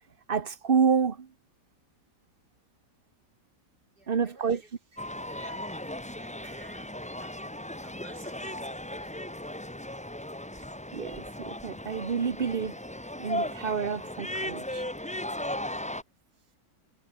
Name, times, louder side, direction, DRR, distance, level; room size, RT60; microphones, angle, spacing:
voice 1, 0.3-1.2 4.1-4.6 10.9-12.7 13.2-14.8, right 6 dB, 35° right, 1.1 m, -28 dB
voice 2, 3.9-4.7 5.3-6.9 7.2-7.4 7.8-8.6 8.9-9.3, right 2 dB, 60° right, 8.3 m, -55 dB
sound 1, 5.0-16.0, left 1 dB, 5° left, 0.8 m, -37 dB
omnidirectional pair, 1.9 m